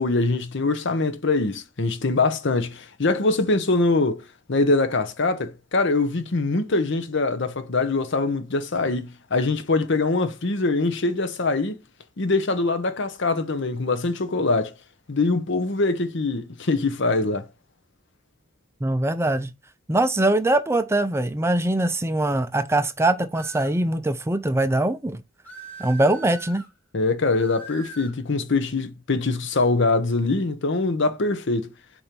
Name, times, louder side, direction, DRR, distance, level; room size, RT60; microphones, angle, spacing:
voice 1, 0.0-4.2 4.5-11.8 12.2-14.7 15.1-17.5 26.9-31.7, left 3 dB, 60° left, 0.9 m, -23 dB
voice 2, 18.8-19.5 19.9-25.2 25.8-26.6, right 1 dB, 15° right, 0.4 m, -22 dB
sound 1, 23.3-23.8 25.4-26.7 27.4-28.2, right 2 dB, 10° left, 2.1 m, -41 dB
4.4 x 4.3 x 5.2 m
head